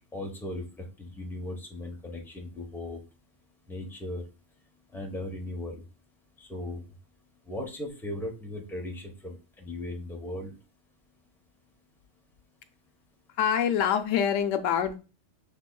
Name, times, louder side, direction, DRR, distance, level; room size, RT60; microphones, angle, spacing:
voice 1, 0.1-3.0 3.7-4.2 4.9-5.8 6.4-6.9 7.5-10.5, left 1 dB, ahead, 1 dB, 0.8 m, -37 dB
voice 2, 13.4-15.0, left 8 dB, 90° left, 9 dB, 1.0 m, -25 dB
6.3 x 3.4 x 2.2 m, 0.31 s
omnidirectional pair, 1.3 m